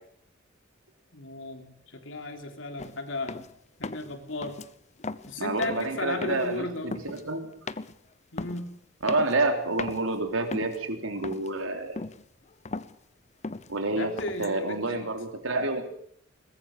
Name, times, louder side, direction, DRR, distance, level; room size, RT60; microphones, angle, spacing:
voice 1, 1.1-3.4 3.8-4.6 5.2-7.0 8.3-8.8 13.9-15.1, left 2 dB, 70° left, 5 dB, 3.5 m, -35 dB
sound 1, 2.8-3.0 3.3-3.5 3.8-4.2 4.4-4.7 5.0-5.3 5.6-5.9 6.2-6.6 6.9-7.2 7.7-8.0 8.4-8.6 9.1-9.5 9.8-10.0 10.5-10.9 11.2-11.6 12.0-12.2 12.5-13.0 13.4-13.7 14.2-14.6, left 3 dB, 35° left, 0.8 m, -37 dB
voice 2, 5.4-7.5 9.0-12.0 13.7-14.1 14.4-15.8, right 2 dB, 85° right, 5 dB, 3.6 m, -28 dB
22.5 x 20.0 x 6.7 m, 0.64 s
head